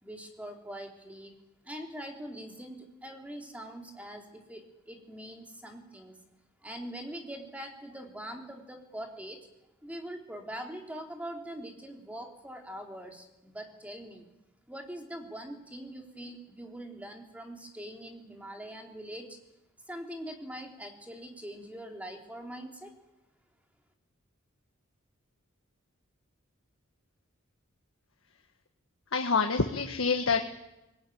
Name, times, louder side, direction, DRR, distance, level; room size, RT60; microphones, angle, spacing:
voice 1, 0.0-1.3 1.6-6.1 6.6-9.4 9.8-14.3 14.7-19.4 19.9-22.9, equal, 5° right, 2 dB, 3.2 m, -43 dB
voice 2, 29.1-30.4, left 4 dB, 80° left, 5 dB, 1.5 m, -26 dB
21.5 x 19.0 x 9.3 m, 0.94 s
head